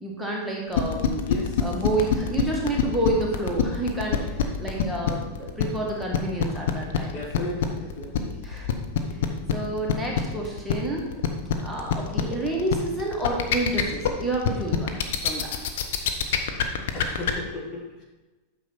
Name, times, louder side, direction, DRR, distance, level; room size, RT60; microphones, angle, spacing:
voice 1, 0.0-1.2 1.6-7.1 8.4-8.7 9.1-9.2 9.5-11.1 11.6-15.6, right 2 dB, 5° right, -3 dB, 1.8 m, -29 dB
sound 1, 0.7-17.3, left 9 dB, 55° left, 0.9 m, -24 dB
voice 2, 1.2-1.7 7.1-8.4 16.9-18.0, left 2 dB, 30° left, -1 dB, 1.8 m, -35 dB
9.1 x 6.4 x 4.2 m, 1.2 s
figure-of-eight pair, 90°, 0 cm